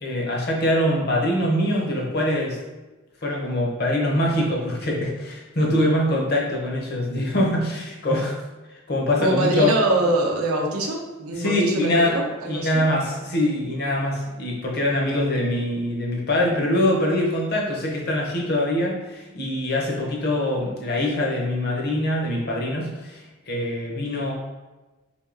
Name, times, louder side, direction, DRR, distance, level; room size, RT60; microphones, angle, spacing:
voice 1, 0.0-2.6 3.2-8.3 8.9-9.7 11.4-12.2 12.5-24.3, left 1 dB, 45° left, -1 dB, 0.7 m, -23 dB
voice 2, 9.2-12.8 15.1-15.2, right 2 dB, 80° right, 0 dB, 0.6 m, -24 dB
3.4 x 2.7 x 2.5 m, 1.2 s
head